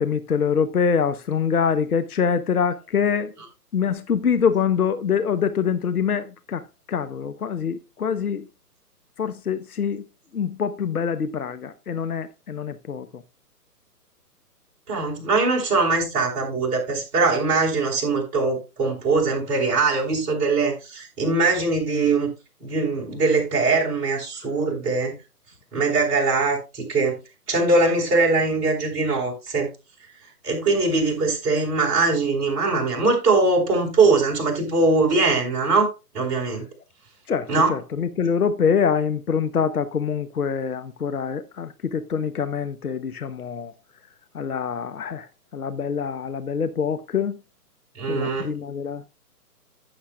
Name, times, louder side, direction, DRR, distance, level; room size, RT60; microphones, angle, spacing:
voice 1, 0.0-3.4 3.7-8.5 9.2-10.0 10.3-13.2 37.3-43.7 44.3-47.4 48.1-49.1, left 6 dB, 65° left, 1.0 m, -25 dB
voice 2, 14.9-22.3 22.6-25.1 25.7-27.2 27.5-29.7 30.4-36.7 37.5-37.8 47.9-48.5, right 3 dB, 15° right, 4.3 m, -22 dB
15.0 x 7.3 x 2.3 m
figure-of-eight pair, 135°, 48 cm